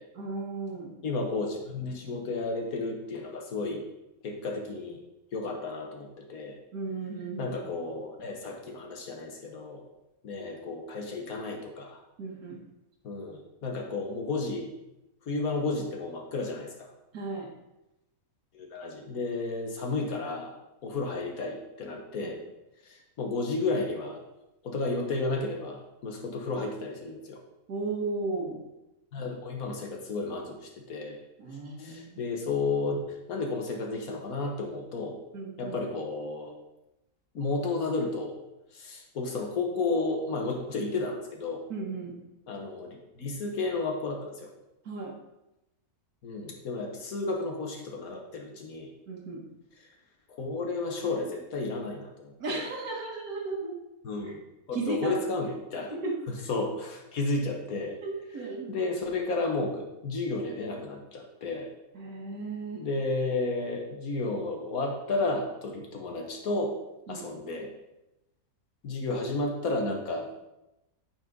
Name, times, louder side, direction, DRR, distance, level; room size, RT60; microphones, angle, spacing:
voice 1, 0.2-0.9 6.7-7.6 12.2-12.6 17.1-17.5 27.7-28.6 31.4-32.2 35.3-35.8 41.7-42.2 44.9-45.1 49.1-49.5 52.4-53.8 54.3-54.4 54.7-55.2 55.9-56.1 58.0-58.8 61.9-62.9 67.1-67.2, right 3 dB, 80° right, -2 dB, 1.8 m, -35 dB
voice 2, 1.0-3.8 4.2-5.0 5.3-6.6 7.4-9.8 10.2-12.0 13.0-14.7 15.3-16.9 18.5-20.5 20.8-22.4 22.8-24.2 24.6-27.4 29.1-31.2 31.8-33.0 33.3-35.2 35.6-36.5 37.4-38.4 38.7-41.6 42.5-44.5 46.2-48.9 49.8-49.9 50.3-52.6 54.0-54.4 54.7-56.0 56.5-58.0 58.7-61.7 62.7-66.8 67.1-67.7 68.8-70.5, left 3 dB, 75° left, 1 dB, 1.6 m, -32 dB
8.8 x 4.4 x 5.3 m, 0.94 s
omnidirectional pair, 1.6 m